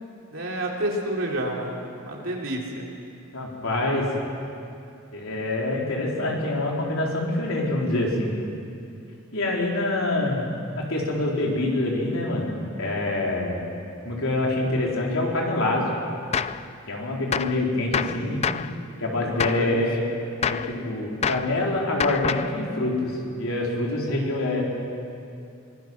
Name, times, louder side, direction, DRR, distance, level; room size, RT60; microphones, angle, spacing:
voice 1, 0.3-2.9 17.9-19.8, right 1 dB, 65° right, -1 dB, 3.6 m, -31 dB
voice 2, 3.3-4.1 5.1-8.4 9.3-10.5 10.7-13.6 14.0-15.9 16.9-18.4 19.0-20.1 20.4-24.6, left 2 dB, 75° left, -2 dB, 4.2 m, -26 dB
Gunshot gunfire, 16.3-16.6 17.3-17.6 17.9-18.7 19.4-19.7 20.4-20.7 21.2-21.5 22.0-22.5, left 6 dB, 30° left, 0.4 m, -27 dB
24.0 x 20.0 x 6.2 m, 2.6 s
head